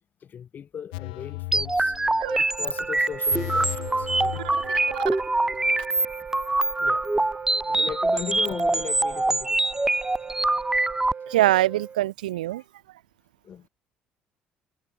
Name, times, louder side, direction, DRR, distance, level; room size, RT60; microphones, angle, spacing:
voice 1, 0.2-2.0 2.3-4.1 6.8-7.1 7.7-9.6 13.4-13.7, left 8 dB, 40° left, 2.5 m, -37 dB
sound 1, 0.9-2.5 2.8-2.9 3.3-5.2 5.5-5.6, left 29 dB, 65° left, 1.0 m, -36 dB
sound 2, 1.5-11.1, right 2 dB, 10° right, 1.3 m, -24 dB
Wind instrument woodwind instrument, 2.2-12.1, right 6 dB, 35° right, 1.4 m, -38 dB
voice 2, 11.3-12.6, right 15 dB, 75° right, 1.2 m, -23 dB
figure-of-eight pair, 50°, 5 cm